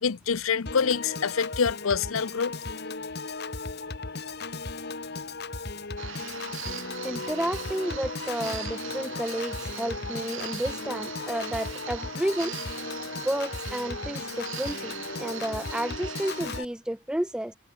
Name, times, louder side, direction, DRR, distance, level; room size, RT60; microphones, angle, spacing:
voice 1, 0.0-2.5, left 6 dB, 75° left, 0.7 m, -26 dB
Piano / Organ, 0.7-16.7, left 3 dB, 50° left, 1.5 m, -36 dB
sound 1, 6.0-16.6, right 8 dB, 65° right, 4.8 m, -40 dB
voice 2, 7.0-12.6 13.2-17.5, right 1 dB, 5° right, 0.3 m, -31 dB
head